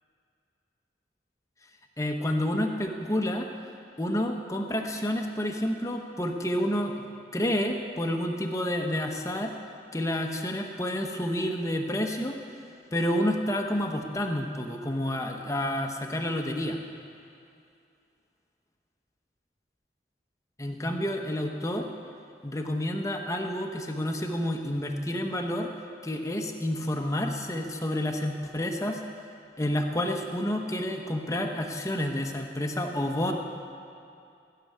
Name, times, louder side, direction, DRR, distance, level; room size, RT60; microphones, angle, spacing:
voice 1, 2.0-3.5 4.0-9.5 9.9-12.4 12.9-16.8 20.6-21.9 22.4-25.7 26.0-29.0 29.6-33.3, left 1 dB, 20° left, 3 dB, 1.0 m, -29 dB
16.5 x 6.9 x 9.5 m, 2.5 s
head